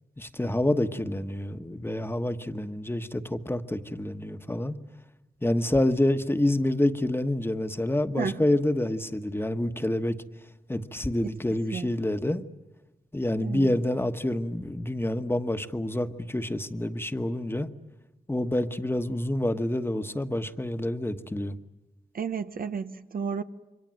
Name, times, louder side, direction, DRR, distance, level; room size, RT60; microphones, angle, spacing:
voice 1, 0.2-4.8 5.4-10.2 10.7-12.4 13.1-17.7 18.3-21.6, left 1 dB, 15° left, 1.3 m, -27 dB
voice 2, 13.4-13.7 22.1-23.4, right 6 dB, 90° right, 1.0 m, -32 dB
27.5 x 24.5 x 7.7 m
wide cardioid pair, 65°, 14 cm